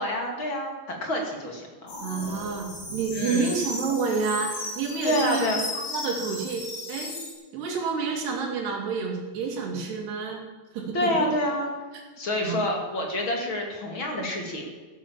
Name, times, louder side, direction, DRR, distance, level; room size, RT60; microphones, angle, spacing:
voice 1, 0.0-1.9 3.1-3.5 5.0-5.6 10.9-11.7 12.2-14.7, left 1 dB, 35° left, 2 dB, 2.7 m, -27 dB
sound 1, 1.9-7.3, left 2 dB, 75° left, 6.3 m, -35 dB
voice 2, 2.0-5.5 5.7-7.2 7.5-10.4 10.7-11.1 12.4-12.6, right 5 dB, 75° right, 1 dB, 4.9 m, -29 dB
15.0 x 11.5 x 7.4 m, 1.4 s
omnidirectional pair, 4.8 m